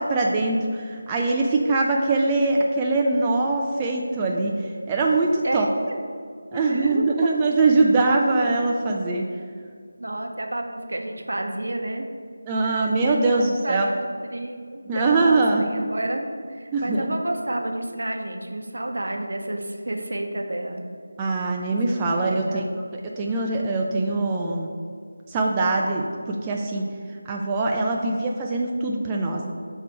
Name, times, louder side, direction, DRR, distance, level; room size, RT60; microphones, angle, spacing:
voice 1, 0.0-5.7 6.5-9.3 12.5-13.9 14.9-15.6 16.7-17.1 21.2-22.6 23.2-24.7 25.3-26.8 27.3-29.5, right 3 dB, 15° right, -1 dB, 0.3 m, -22 dB
voice 2, 5.4-6.0 6.5-7.3 10.0-12.1 12.6-13.9 14.3-20.8 22.2-22.9 27.9-28.2, right 1 dB, 70° right, 4 dB, 0.7 m, -30 dB
6.6 x 3.3 x 4.4 m, 2.1 s
figure-of-eight pair, 165°, 0 cm